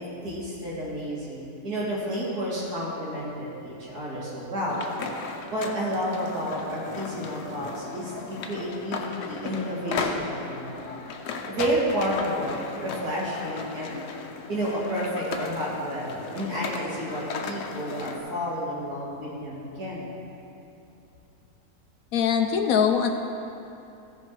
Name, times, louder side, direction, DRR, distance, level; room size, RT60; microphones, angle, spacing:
voice 1, 0.0-4.8 5.5-10.7 11.5-14.0 14.5-20.1, equal, 75° right, -7 dB, 2.9 m, -31 dB
sound 1, 4.7-18.2, left 5 dB, 85° left, 1.3 m, -36 dB
voice 2, 22.1-23.1, left 7 dB, 70° left, 5 dB, 0.9 m, -22 dB
14.5 x 5.7 x 4.7 m, 2.8 s
omnidirectional pair, 1.7 m